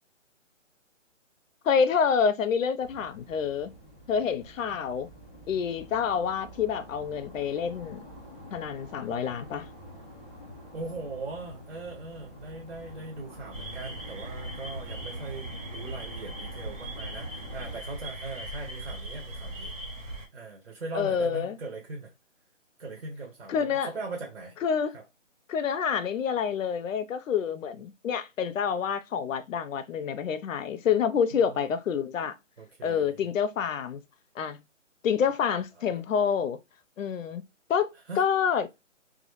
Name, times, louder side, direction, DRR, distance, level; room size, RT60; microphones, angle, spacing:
voice 1, 1.6-3.7 4.1-5.1 5.5-8.0 8.5-9.7 20.9-21.6 23.5-23.9 24.6-25.0 25.5-32.3 32.8-34.0 34.4-34.6 35.0-36.6 37.0-37.4 37.7-37.9 38.2-38.7, left 7 dB, 80° left, 0.5 m, -27 dB
sound 1, 2.8-17.8, equal, ahead, 0.4 m, -47 dB
voice 2, 10.7-19.7 20.3-22.1 22.8-24.6 24.9-25.0 31.3-31.7 32.6-33.2 35.8-36.0 38.1-38.2, right 3 dB, 60° right, 0.7 m, -40 dB
sound 2, 13.5-20.3, right 1 dB, 85° right, 1.0 m, -39 dB
2.2 x 2.0 x 2.9 m
hypercardioid pair, 175°, 39 cm